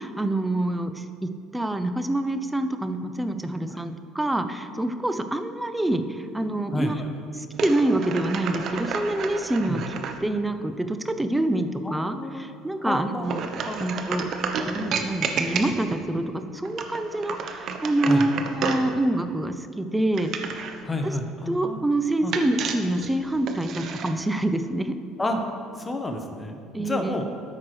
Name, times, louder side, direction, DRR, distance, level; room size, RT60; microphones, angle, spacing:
voice 1, 0.0-7.0 7.4-9.8 10.2-13.4 13.8-14.3 14.7-20.7 21.5-25.0 26.7-27.1, right 1 dB, 10° right, 9 dB, 0.6 m, -26 dB
voice 2, 6.7-7.1 9.7-9.8 11.8-12.4 12.8-13.3 13.7-14.1 18.1-18.2 20.8-21.8 22.2-22.3 25.2-25.4 25.8-27.3, left 1 dB, 20° left, 4 dB, 1.0 m, -30 dB
pouring coffee into take-away cup, 7.5-10.2 13.2-16.0 16.6-18.9 20.1-20.8 22.3-24.1, right 5 dB, 55° right, 0.8 m, -31 dB
13.5 x 5.8 x 3.2 m, 2.4 s
supercardioid pair, 80°, 0 cm